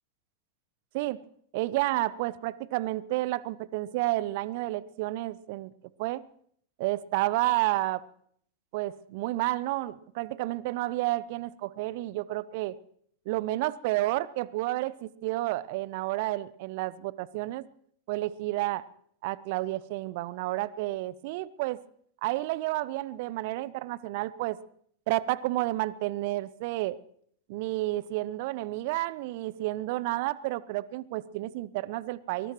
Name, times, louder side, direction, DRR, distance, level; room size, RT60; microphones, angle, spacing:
voice 1, 1.5-5.7 6.0-6.2 6.8-8.0 8.7-12.7 13.3-17.6 18.1-18.8 19.2-21.8 22.2-24.6 25.1-27.0 27.5-32.5, right 17 dB, 50° right, 20 dB, 0.6 m, -30 dB
23.0 x 20.0 x 3.1 m, 0.64 s
figure-of-eight pair, 90°, 0 cm